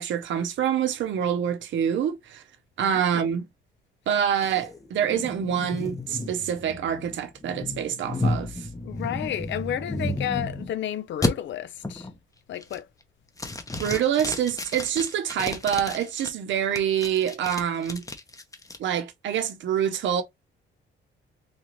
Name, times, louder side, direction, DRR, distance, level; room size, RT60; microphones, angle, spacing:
voice 1, 0.0-2.4 2.8-3.4 4.1-8.7 13.8-18.0 18.8-20.2, right 9 dB, 70° right, 0.8 m, -26 dB
voice 2, 2.8-3.3 8.8-12.1 12.5-12.9, left 10 dB, 65° left, 0.7 m, -32 dB
sound 1, 4.4-10.7 11.2-11.3 11.8-12.2 12.6-13.0 13.4-16.3 16.8-18.8, left 2 dB, 15° left, 0.8 m, -32 dB
3.9 x 2.5 x 3.1 m
cardioid pair, 90°, 20 cm